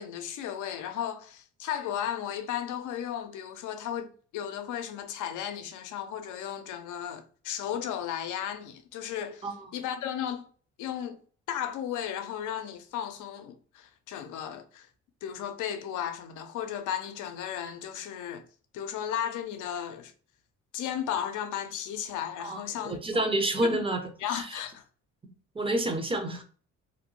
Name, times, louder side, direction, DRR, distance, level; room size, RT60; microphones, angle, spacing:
voice 1, 0.0-10.4 10.8-11.2 11.5-14.9 15.2-18.4 18.7-20.1 20.7-23.3 23.7-23.8 24.2-24.8, left 9 dB, 85° left, 0.5 m, -35 dB
voice 2, 22.4-24.0 24.3-24.6 25.2-26.4, right 1 dB, 20° right, 0.6 m, -29 dB
2.7 x 2.1 x 3.0 m
cardioid pair, 90°, 30 cm